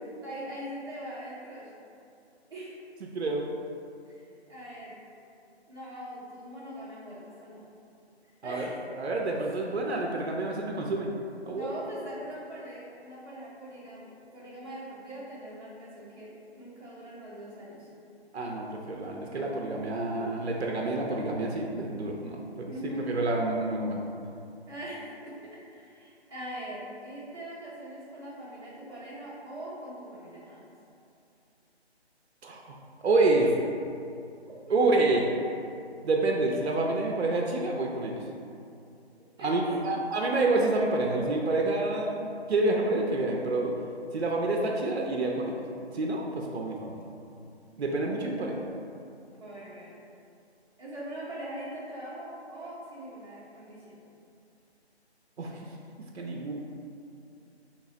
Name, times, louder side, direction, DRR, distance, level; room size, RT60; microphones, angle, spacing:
voice 1, 0.0-1.7 2.5-2.8 4.1-5.0 5.7-7.6 8.4-8.8 9.7-10.2 11.5-17.9 22.7-23.1 24.7-30.6 34.7-34.8 39.4-40.0 49.3-50.0 50.8-54.0, right 1 dB, 25° right, -12 dB, 0.7 m, -42 dB
voice 2, 3.0-3.4 8.4-8.6 9.0-11.1 11.5-11.7 18.3-22.7 23.1-24.0 32.4-32.8 33.0-33.5 34.7-35.3 36.0-38.2 39.4-43.7 44.1-45.6 45.9-47.1 47.8-48.6 55.4-55.5 56.1-56.5, right 2 dB, 70° right, 0 dB, 0.5 m, -28 dB
2.8 x 2.2 x 4.0 m, 2.6 s
figure-of-eight pair, 150°, 33 cm